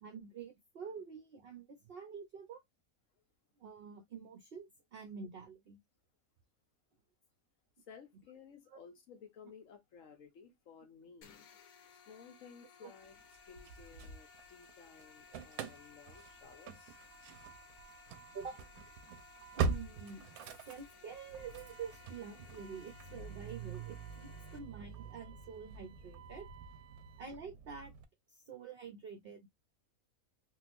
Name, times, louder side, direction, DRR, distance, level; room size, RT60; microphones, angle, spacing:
voice 1, 0.0-2.6 3.6-5.8 8.7-8.8 12.8-12.9 18.1-18.5 19.6-26.5 27.2-27.9 28.3-29.5, right 6 dB, 55° right, 0.7 m, -48 dB
voice 2, 7.9-11.3 12.1-13.2 13.5-17.0, left 6 dB, 65° left, 1.0 m, -56 dB
sound 1, 11.2-24.6, left 5 dB, 85° left, 1.1 m, -59 dB
Engine starting / Slam, 13.3-14.7 15.0-28.0, right 5 dB, 85° right, 1.1 m, -44 dB
3.7 x 2.3 x 2.5 m
omnidirectional pair, 1.5 m